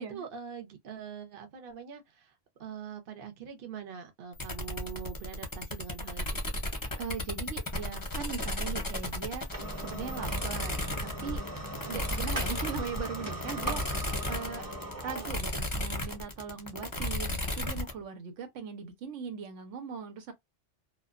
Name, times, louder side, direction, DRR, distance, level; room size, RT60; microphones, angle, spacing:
voice 1, 0.0-2.3 2.6-6.4, right 7 dB, 55° right, 0.9 m, -43 dB
sound 1, 4.4-17.9, left 1 dB, 25° left, 0.5 m, -35 dB
sound 2, 6.9-18.0, right 1 dB, 20° right, 0.8 m, -41 dB
voice 2, 7.0-11.4 11.8-14.7 15.0-20.3, right 6 dB, 85° right, 1.1 m, -40 dB
2.4 x 2.2 x 2.3 m
omnidirectional pair, 1.2 m